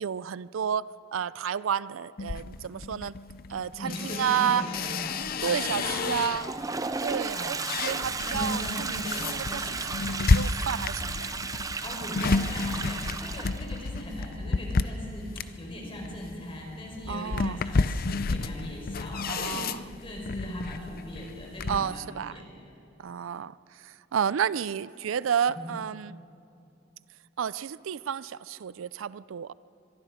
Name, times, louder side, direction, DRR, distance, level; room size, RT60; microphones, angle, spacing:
voice 1, 0.0-3.1 3.5-4.6 5.4-6.5 7.0-11.3 17.1-17.6 19.3-19.8 21.7-22.4 23.0-26.2 27.4-29.5, right 8 dB, 85° right, 18 dB, 0.4 m, -31 dB
sound 1, 2.2-6.7 7.1-21.9, left 3 dB, 50° left, 0.5 m, -31 dB
voice 2, 3.8-6.2 7.3-7.7 8.2-9.7 11.8-19.7 20.0-22.7 25.5-25.7, left 1 dB, 30° left, 0 dB, 4.8 m, -39 dB
Toilet flush, 6.2-13.9, right 4 dB, 20° right, 0.6 m, -34 dB
23.5 x 22.5 x 5.0 m, 2.6 s
head